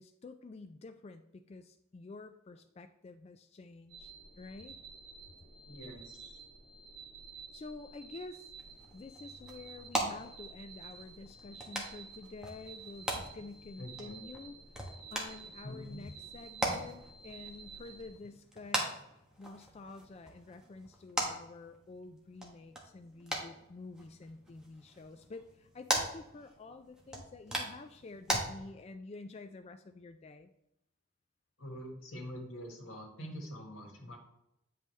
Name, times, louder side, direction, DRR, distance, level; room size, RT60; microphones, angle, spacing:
voice 1, 0.0-4.8 7.5-8.5 8.9-18.9 19.4-30.5, left 3 dB, 30° left, 8 dB, 0.3 m, -49 dB
sound 1, 3.9-18.1, right 5 dB, 50° right, 2.5 m, -52 dB
voice 2, 5.6-6.3 13.8-14.2 15.6-16.0 31.6-34.2, equal, 90° left, 1 dB, 1.7 m, -45 dB
sound 2, 8.6-28.4, right 1 dB, 5° right, 1.1 m, -40 dB
8.8 x 5.3 x 3.2 m, 0.82 s
head